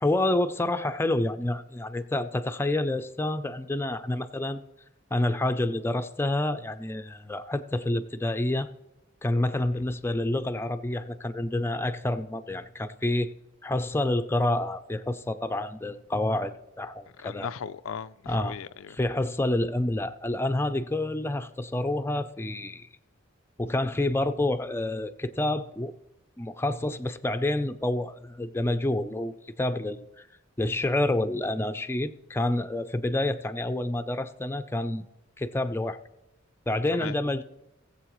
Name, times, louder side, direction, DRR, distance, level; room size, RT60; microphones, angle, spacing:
voice 1, 0.0-4.6 5.1-8.7 9.2-13.3 13.6-17.5 18.3-18.5 18.9-22.9 23.6-25.9 26.4-30.2 30.6-35.0 35.4-36.0 36.7-37.4, left 1 dB, 10° left, 0.5 m, -28 dB
voice 2, 17.2-19.0 36.9-37.1, left 7 dB, 80° left, 0.4 m, -37 dB
20.0 x 7.3 x 3.1 m
head